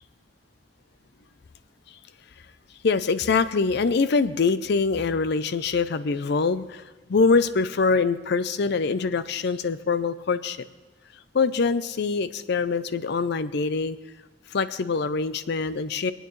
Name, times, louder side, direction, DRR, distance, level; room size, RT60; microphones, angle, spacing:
voice 1, 2.8-6.8 7.1-10.6 11.3-14.0 14.5-16.1, left 4 dB, 60° left, 13 dB, 0.5 m, -24 dB
24.0 x 8.9 x 3.2 m, 1.2 s
head